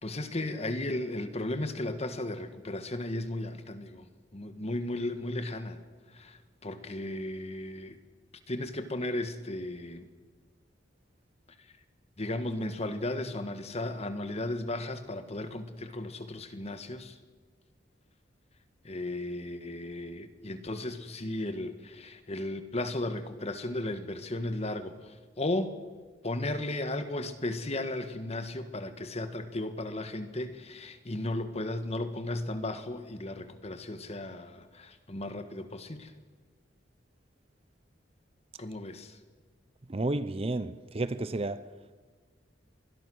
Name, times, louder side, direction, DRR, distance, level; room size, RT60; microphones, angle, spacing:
voice 1, 0.0-4.1 4.3-5.8 6.1-8.0 8.5-10.1 12.2-17.2 18.8-25.8 26.2-36.1 38.6-39.2, left 1 dB, 35° left, 1.5 m, -35 dB
voice 2, 39.9-41.6, right 2 dB, 30° right, 0.7 m, -31 dB
25.5 x 20.5 x 6.4 m
head